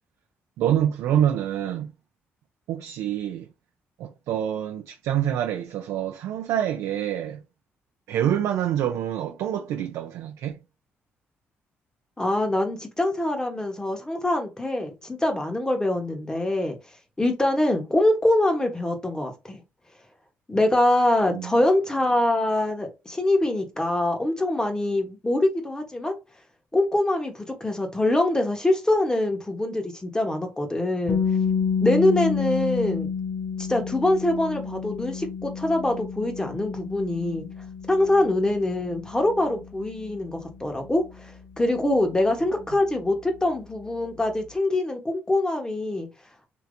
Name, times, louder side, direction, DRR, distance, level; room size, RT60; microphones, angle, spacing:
voice 1, 0.6-1.9 2.7-3.5 4.0-7.4 8.1-10.6 21.3-21.5, right 10 dB, 90° right, 0.4 m, -26 dB
voice 2, 12.2-16.8 17.2-19.6 20.5-26.1 26.7-31.2 31.8-33.1 33.6-37.5 37.9-41.0 41.6-46.1, left 1 dB, 15° left, 1.0 m, -24 dB
sound 1, 31.1-42.9, left 6 dB, 60° left, 0.5 m, -30 dB
3.3 x 2.8 x 2.6 m
cardioid pair, 90°, 5 cm